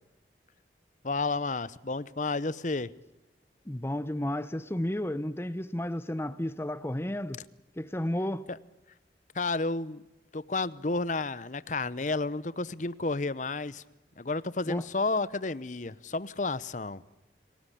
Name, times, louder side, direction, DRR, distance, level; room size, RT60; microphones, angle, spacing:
voice 1, 1.0-2.9 9.3-10.0 10.3-13.8 14.2-17.0, left 3 dB, 45° left, 0.9 m, -31 dB
voice 2, 3.6-7.4 7.8-8.5 14.7-14.8, left 1 dB, 15° left, 0.9 m, -32 dB
28.5 x 18.5 x 10.0 m
head